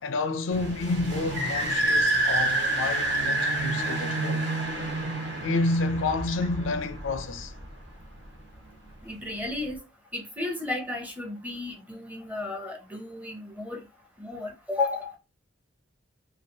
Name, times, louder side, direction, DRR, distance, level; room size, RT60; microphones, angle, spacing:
voice 1, 0.0-4.5 5.4-7.5, left 3 dB, 80° left, 0.4 m, -29 dB
sound 1, 0.5-7.8, right 2 dB, 60° right, 1.3 m, -28 dB
voice 2, 9.0-9.8 10.1-13.9 14.2-15.2, left 2 dB, 10° right, 0.7 m, -33 dB
3.1 x 2.3 x 2.7 m
head